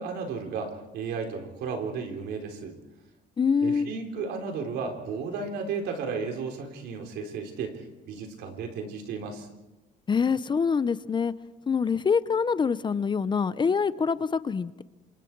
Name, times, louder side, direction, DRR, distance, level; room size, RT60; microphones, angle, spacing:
voice 1, 0.0-2.8 3.6-9.5, right 5 dB, 75° right, 4 dB, 3.9 m, -34 dB
voice 2, 3.4-3.9 10.1-11.3 11.7-14.8, left 5 dB, 25° left, 15 dB, 0.7 m, -25 dB
27.5 x 26.0 x 4.7 m, 1.0 s
cardioid pair, 110°, 17 cm